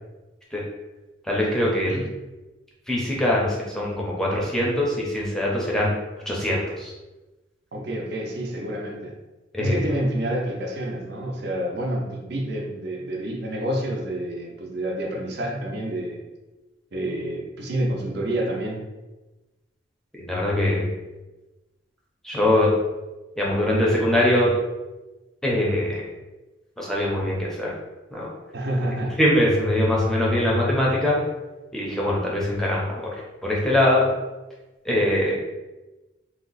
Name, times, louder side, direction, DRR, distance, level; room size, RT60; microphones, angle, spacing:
voice 1, 1.2-2.1 2.9-5.9 6.3-6.9 9.5-9.8 20.1-20.9 22.2-22.8 23.4-24.6 25.4-26.1 26.8-27.7 28.1-28.3 29.2-31.2 31.7-34.1 34.8-35.4, left 1 dB, 5° left, -5 dB, 0.6 m, -22 dB
voice 2, 7.7-9.1 9.6-16.2 16.9-18.8 28.5-29.2, right 1 dB, 55° right, -1 dB, 0.6 m, -28 dB
2.8 x 2.1 x 3.9 m, 1.1 s
head